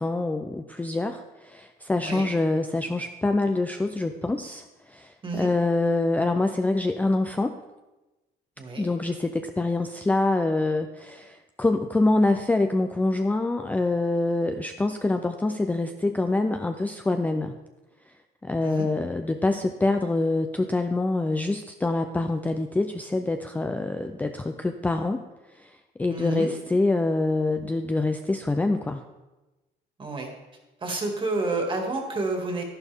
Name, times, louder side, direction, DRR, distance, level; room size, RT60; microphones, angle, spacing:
voice 1, 0.0-7.6 8.8-17.6 18.4-25.2 25.6-29.0, left 2 dB, 10° left, 6 dB, 0.4 m, -25 dB
voice 2, 8.6-8.9 18.6-18.9 26.1-26.5 30.0-30.3 30.8-32.6, right 2 dB, 30° right, 2 dB, 2.1 m, -29 dB
12.0 x 11.0 x 3.5 m, 1.1 s
cardioid pair, 140°, 18 cm